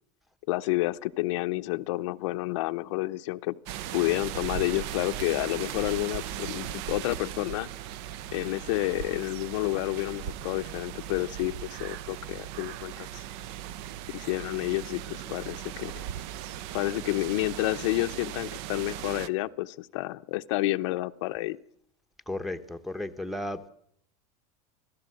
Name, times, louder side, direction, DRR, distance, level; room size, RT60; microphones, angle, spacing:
voice 1, 0.5-3.6 3.9-7.7 8.3-13.2 14.1-16.0 16.7-21.6, left 19 dB, 70° left, 9 dB, 0.8 m, -30 dB
sound 1, 3.7-19.3, right 11 dB, 60° right, 0.8 m, -38 dB
voice 2, 22.3-23.7, left 1 dB, ahead, 7 dB, 0.9 m, -34 dB
26.0 x 15.5 x 7.7 m, 0.71 s
supercardioid pair, 160°, 16 cm